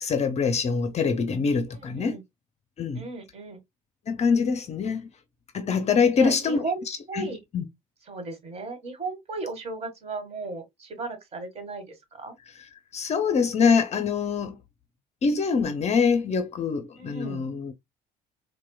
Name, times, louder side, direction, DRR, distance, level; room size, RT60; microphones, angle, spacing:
voice 1, 0.0-2.2 2.8-3.0 4.1-5.1 5.5-7.6 12.9-14.6 15.2-17.7, left 5 dB, 35° left, 0.7 m, -24 dB
voice 2, 1.7-2.2 2.9-3.6 6.2-6.8 7.1-7.4 8.1-12.3 17.0-17.5, right 3 dB, 35° right, 1.6 m, -35 dB
4.3 x 2.3 x 2.2 m
hypercardioid pair, 60°, 18 cm